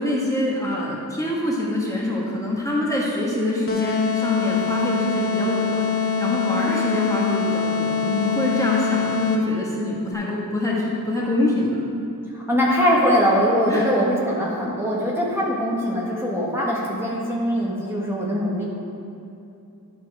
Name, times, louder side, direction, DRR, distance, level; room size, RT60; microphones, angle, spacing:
voice 1, 0.0-11.8 13.7-13.9, left 1 dB, 10° left, -5 dB, 1.5 m, -25 dB
sound 1, 3.7-9.6, left 5 dB, 35° left, 1.0 m, -24 dB
voice 2, 12.3-18.6, equal, 5° right, -6 dB, 1.4 m, -22 dB
12.0 x 4.3 x 4.8 m, 2.7 s
wide cardioid pair, 80°, 37 cm